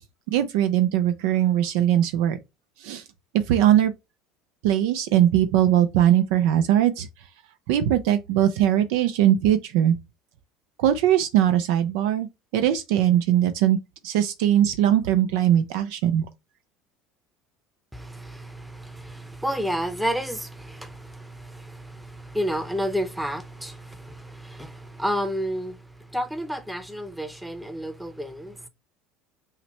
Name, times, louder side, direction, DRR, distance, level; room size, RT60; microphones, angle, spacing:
voice 1, 0.3-2.4 2.8-3.0 3.3-3.9 4.6-7.1 7.7-9.9 10.8-12.3 12.5-13.8 14.0-16.3, right 11 dB, 75° right, 0.4 m, -20 dB
voice 2, 17.9-25.8 26.1-28.6, equal, 5° right, 0.7 m, -31 dB
5.6 x 2.1 x 3.1 m
supercardioid pair, 105°, 0 cm